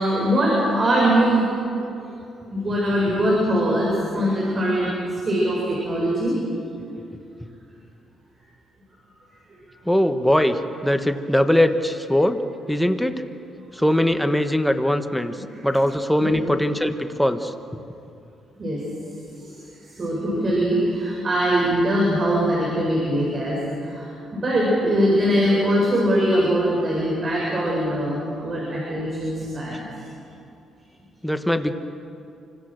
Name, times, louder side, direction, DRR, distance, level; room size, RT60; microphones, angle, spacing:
voice 1, 0.0-1.4 2.5-4.9 5.2-6.4 15.5-15.6 16.2-16.4 18.6-18.8 20.0-23.6 23.8-29.8, equal, 40° right, -3 dB, 7.9 m, -22 dB
voice 2, 9.8-13.2 13.7-15.4 15.6-17.5 29.7-29.8 31.2-31.7, left 1 dB, 5° left, 7 dB, 1.5 m, -21 dB
29.0 x 26.0 x 6.7 m, 2.6 s
cardioid pair, 90°, 0 cm